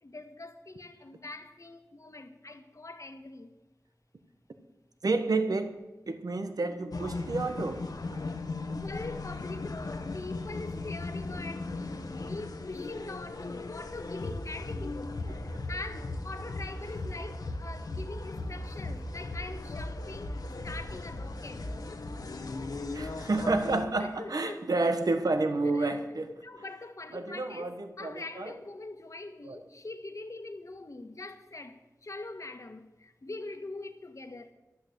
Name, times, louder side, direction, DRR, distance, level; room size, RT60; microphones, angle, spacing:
voice 1, 0.0-3.6 8.8-20.3 20.6-22.1 24.0-24.6 25.6-27.7 28.0-34.5, left 2 dB, 55° left, 1.6 m, -43 dB
voice 2, 5.0-5.7 6.1-7.9 15.5-15.6 22.9-26.3 27.1-28.5 29.4-29.6, right 3 dB, 75° right, 1.3 m, -30 dB
sound 1, 6.9-23.8, left 2 dB, 80° left, 1.4 m, -37 dB
14.0 x 12.0 x 8.0 m
wide cardioid pair, 60°, 6 cm